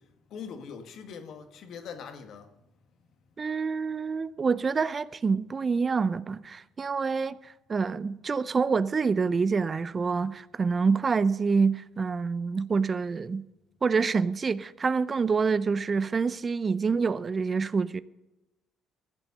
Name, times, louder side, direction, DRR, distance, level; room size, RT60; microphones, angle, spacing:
voice 1, 0.3-2.5, left 6 dB, 65° left, 1.6 m, -42 dB
voice 2, 3.4-13.4 13.8-18.0, right 5 dB, 40° right, 0.6 m, -27 dB
15.0 x 8.0 x 6.5 m
hypercardioid pair, 60°, 0 cm